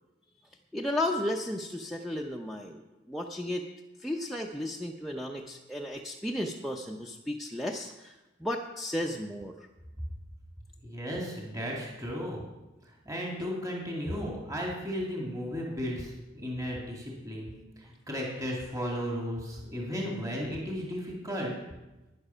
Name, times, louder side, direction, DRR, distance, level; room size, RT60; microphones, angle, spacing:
voice 1, 0.7-2.8 3.1-3.6 4.0-9.5, left 1 dB, ahead, 1 dB, 0.6 m, -34 dB
voice 2, 10.8-12.4 12.8-21.5, equal, 20° right, -2 dB, 2.2 m, -35 dB
12.0 x 9.8 x 5.6 m, 1.1 s
head